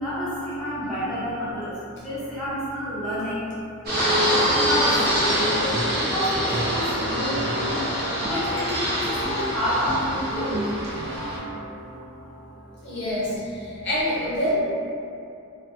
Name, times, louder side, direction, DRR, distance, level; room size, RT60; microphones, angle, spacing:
voice 1, 0.0-3.5 4.0-7.6 8.2-10.5 13.1-13.2, equal, ahead, -11 dB, 0.5 m, -29 dB
Fixed-wing aircraft airplane, 3.9-11.4, equal, 45° right, 0.8 m, -25 dB
sound 1, 5.7-6.2 6.5-7.0 7.3-13.1, equal, 70° right, 0.8 m, -33 dB
voice 2, 12.8-14.5, equal, 55° left, -10 dB, 0.6 m, -27 dB
3.1 x 2.0 x 2.8 m, 2.6 s
head